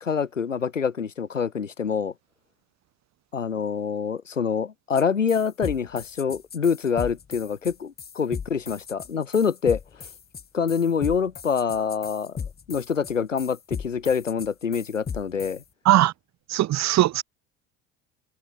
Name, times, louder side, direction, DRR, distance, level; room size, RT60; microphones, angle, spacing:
voice 1, 0.0-2.1 3.3-9.8 10.5-12.3 12.7-15.6, left 6 dB, 90° left, 1.3 m, -26 dB
sound 1, 4.9-5.0 5.3-15.6, left 6 dB, 25° left, 2.5 m, -36 dB
voice 2, 16.5-17.2, right 14 dB, 45° right, 3.0 m, -19 dB
figure-of-eight pair, 65°, 37 cm